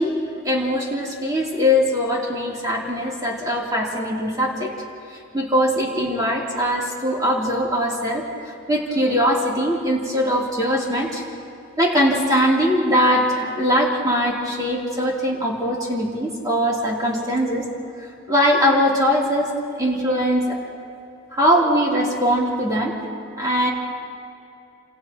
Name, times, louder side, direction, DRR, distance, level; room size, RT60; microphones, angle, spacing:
voice 1, 0.0-4.7 5.1-11.2 11.8-17.7 18.3-19.5 19.8-20.6 21.3-22.9 23.4-23.7, equal, 20° right, -4 dB, 3.5 m, -21 dB
30.0 x 27.5 x 3.1 m, 2.6 s
head